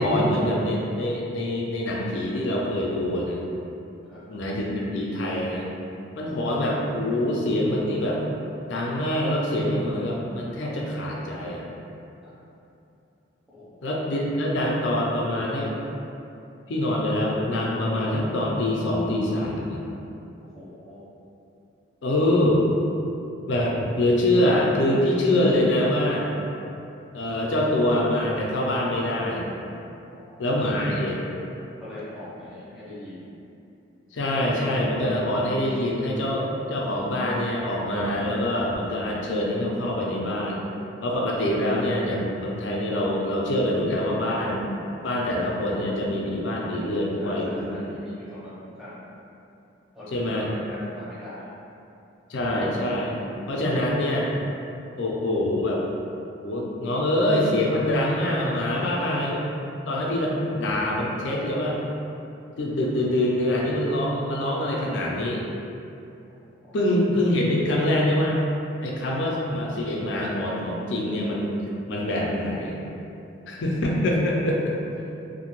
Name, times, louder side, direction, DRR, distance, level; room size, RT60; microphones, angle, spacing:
voice 1, 0.0-3.4 4.3-5.7 6.2-8.2 8.6-11.7 13.8-15.8 16.7-19.8 22.0-22.7 23.5-26.3 27.1-29.5 30.4-31.2 34.1-40.6 41.0-44.7 45.0-47.7 50.1-50.5 52.3-53.2 53.5-54.3 55.0-55.8 56.4-59.4 59.9-61.8 62.6-65.4 66.7-68.4 68.8-71.6 71.9-72.8 73.5-74.8, left 1 dB, 70° left, -3 dB, 0.4 m, -25 dB
voice 2, 20.4-21.0 30.0-31.3 31.8-33.4 47.2-49.1 49.9-51.5 53.5-53.8 58.7-58.9 66.6-66.8 74.2-74.7 75.0-75.1, left 1 dB, ahead, -12 dB, 0.7 m, -41 dB
2.5 x 2.1 x 3.0 m, 2.7 s
head